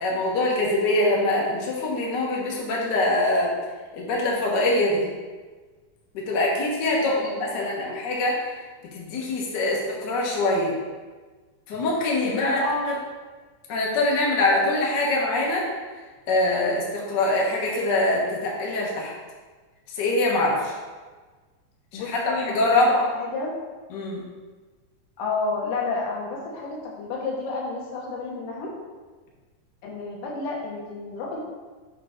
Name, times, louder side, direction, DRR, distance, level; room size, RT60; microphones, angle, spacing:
voice 1, 0.0-3.5 3.9-5.1 6.1-8.5 8.9-10.7 11.7-12.6 12.9-13.0 13.7-15.7 16.3-19.1 19.9-20.7 21.9-22.9 23.9-24.2, left 2 dB, 60° left, -3 dB, 1.1 m, -24 dB
voice 2, 7.0-8.0 12.2-12.9 21.9-23.5 25.2-28.7 29.8-31.4, left 3 dB, 80° left, -2 dB, 2.7 m, -31 dB
6.7 x 3.3 x 5.0 m, 1.4 s
omnidirectional pair, 3.6 m